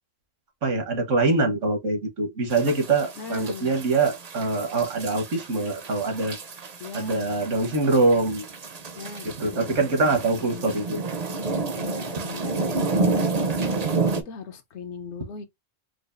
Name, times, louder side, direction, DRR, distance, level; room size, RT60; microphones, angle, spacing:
voice 1, 0.6-6.4 6.9-8.4 9.2-11.0, right 3 dB, 75° right, 1.5 m, -24 dB
sound 1, 2.5-14.2, right 3 dB, 45° right, 0.6 m, -30 dB
voice 2, 3.2-3.7 6.8-7.3 9.0-9.8 10.4-10.8 11.7-13.7 14.2-15.4, left 6 dB, 70° left, 1.0 m, -39 dB
4.8 x 2.3 x 2.5 m
omnidirectional pair, 1.3 m